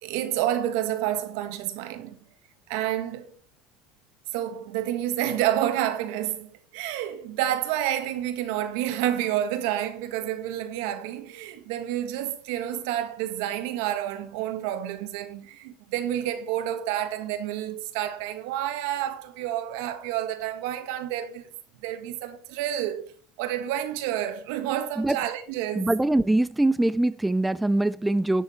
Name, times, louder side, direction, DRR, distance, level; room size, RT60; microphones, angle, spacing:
voice 1, 0.0-2.2 2.7-3.3 4.3-21.5 21.8-23.1 23.4-25.9, right 12 dB, 80° right, 1.6 m, -29 dB
voice 2, 25.8-28.4, right 2 dB, 5° right, 0.3 m, -23 dB
11.5 x 7.0 x 4.3 m
supercardioid pair, 125°, 0 cm